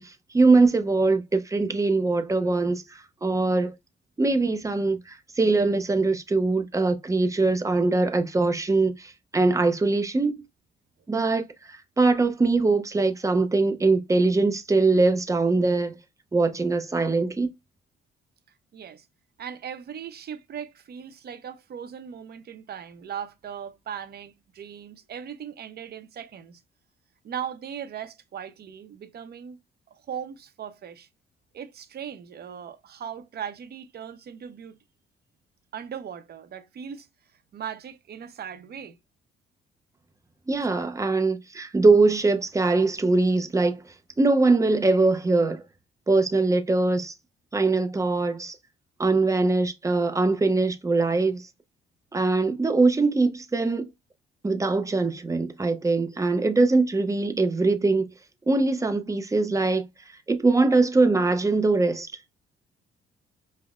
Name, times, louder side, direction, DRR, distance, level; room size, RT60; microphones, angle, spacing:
voice 1, 0.0-3.7 4.2-10.3 11.1-16.0 16.3-17.5 40.5-43.8 44.2-45.6 46.1-47.1 47.5-48.6 49.0-51.5 52.1-53.9 54.4-58.1 58.5-59.9 60.3-62.1, right 3 dB, 15° right, 0.6 m, -22 dB
voice 2, 18.7-19.0 19.4-26.6 27.2-29.6 29.9-31.1 31.5-34.8 35.7-37.1 37.5-39.0, right 8 dB, 55° right, 0.7 m, -38 dB
5.3 x 2.1 x 2.4 m
cardioid pair, 90°, 20 cm